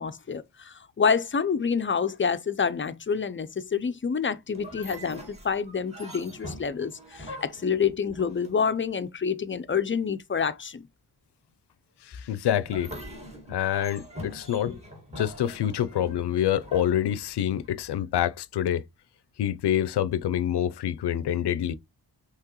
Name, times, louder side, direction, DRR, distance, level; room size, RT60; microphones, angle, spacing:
voice 1, 0.0-10.8 14.7-14.8, left 6 dB, 30° left, 0.4 m, -28 dB
sound 1, 4.5-8.8 12.6-17.7, equal, 15° right, 1.9 m, -43 dB
voice 2, 12.0-12.9 13.5-14.8 15.2-18.8 19.4-21.7, left 10 dB, 85° left, 0.5 m, -26 dB
5.9 x 3.0 x 2.9 m
wide cardioid pair, 110°, 39 cm